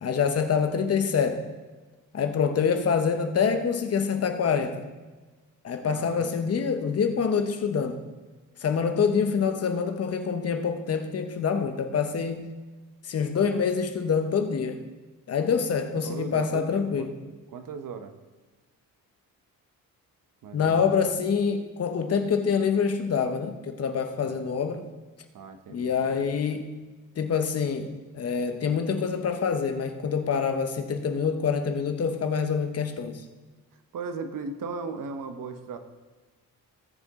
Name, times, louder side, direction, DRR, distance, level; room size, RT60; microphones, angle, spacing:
voice 1, 0.0-1.4 2.1-4.9 5.6-8.0 8.6-12.5 13.1-14.8 15.3-17.1 20.5-24.9 25.7-26.8 27.2-33.2, left 6 dB, 45° left, 7 dB, 1.0 m, -26 dB
voice 2, 5.8-6.5 16.0-17.1 17.5-18.1 20.4-21.2 24.2-24.5 25.3-26.3 33.9-35.8, right 4 dB, 65° right, 8 dB, 1.1 m, -38 dB
18.5 x 6.9 x 3.7 m, 1.3 s
wide cardioid pair, 160°, 35 cm